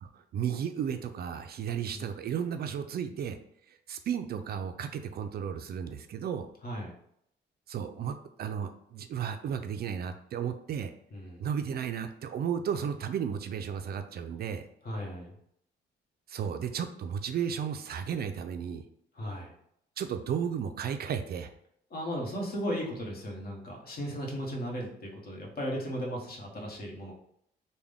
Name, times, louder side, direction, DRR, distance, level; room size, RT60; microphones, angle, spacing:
voice 1, 0.0-3.4 3.7-6.5 7.7-10.9 11.4-14.7 16.3-18.8 20.0-21.5, right 8 dB, 55° right, 7 dB, 0.4 m, -34 dB
voice 2, 6.6-6.9 11.1-11.5 14.8-15.3 19.2-19.5 21.9-27.1, equal, 50° left, -1 dB, 1.2 m, -36 dB
3.5 x 2.2 x 3.4 m, 0.71 s
cardioid pair, 90°, 20 cm